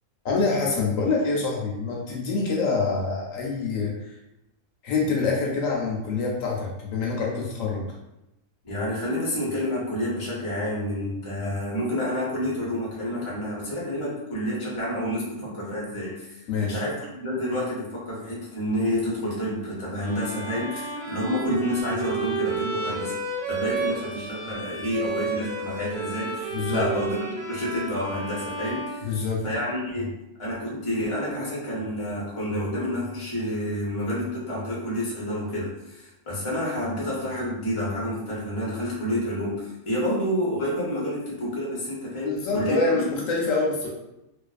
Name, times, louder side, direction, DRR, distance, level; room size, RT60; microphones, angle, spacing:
voice 1, 0.2-4.1 4.8-7.8 16.5-16.8 26.5-26.8 29.0-29.4 42.2-43.9, left 4 dB, 75° left, -2 dB, 0.9 m, -26 dB
voice 2, 8.6-23.1 23.5-29.1 29.4-30.1 30.4-43.1, equal, 35° left, -5 dB, 0.5 m, -29 dB
Bowed string instrument, 20.0-29.7, right 3 dB, 75° right, 1.0 m, -32 dB
2.5 x 2.2 x 2.3 m, 0.90 s
omnidirectional pair, 1.5 m